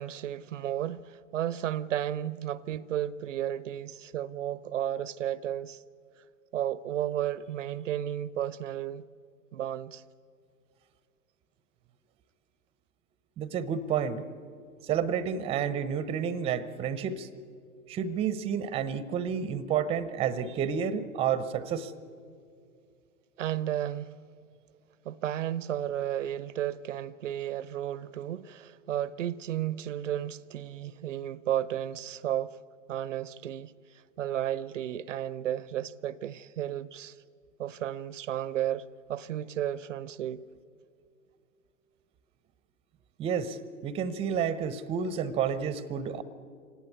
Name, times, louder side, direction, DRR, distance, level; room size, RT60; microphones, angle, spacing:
voice 1, 0.0-5.8 6.5-9.0 9.5-10.0 23.4-24.2 25.0-32.6 32.9-37.2 37.6-40.4, right 11 dB, 55° right, 0.7 m, -33 dB
voice 2, 13.4-14.2 14.8-17.3 17.9-21.9 43.2-46.2, right 7 dB, 15° right, 0.7 m, -30 dB
25.5 x 18.5 x 9.5 m
figure-of-eight pair, 110°, 45 cm